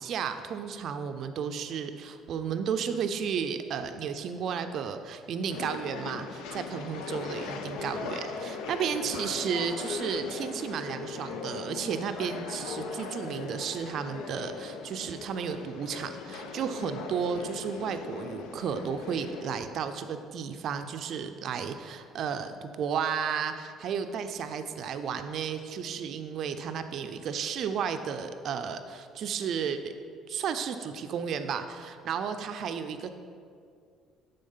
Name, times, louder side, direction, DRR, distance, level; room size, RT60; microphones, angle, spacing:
voice 1, 0.0-29.9 30.3-33.1, right 7 dB, 50° right, 8 dB, 0.4 m, -33 dB
sound 1, 5.5-19.6, left 4 dB, 85° left, 0.6 m, -39 dB
10.0 x 3.9 x 5.5 m, 2.3 s
cardioid pair, 155°, 0 cm